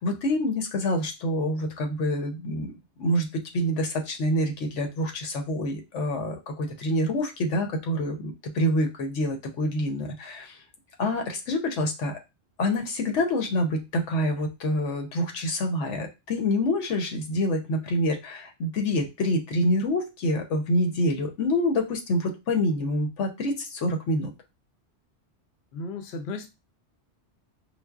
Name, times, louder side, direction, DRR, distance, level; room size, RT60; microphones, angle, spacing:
voice 1, 0.0-3.3 3.5-10.6 11.0-12.2 12.6-24.3, left 1 dB, 85° left, 4 dB, 1.1 m, -27 dB
voice 2, 25.7-26.5, left 3 dB, 70° left, 6 dB, 0.8 m, -34 dB
5.0 x 2.0 x 2.3 m, 0.23 s
omnidirectional pair, 1.2 m